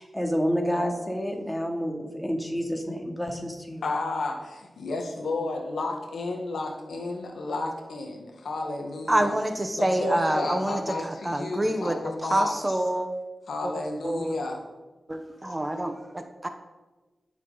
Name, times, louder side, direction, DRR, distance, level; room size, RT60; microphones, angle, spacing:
voice 1, 0.0-3.8, equal, 5° left, 1 dB, 2.8 m, -29 dB
voice 2, 3.8-9.4 9.7-12.5 13.5-14.6, left 2 dB, 85° left, 2 dB, 1.7 m, -32 dB
voice 3, 9.1-10.8 11.2-12.0 12.3-13.1 13.6-13.7 14.0-14.4 15.1-16.5, right 1 dB, 25° right, 6 dB, 1.1 m, -26 dB
20.5 x 7.3 x 4.1 m, 1.2 s
cardioid pair, 50°, 0 cm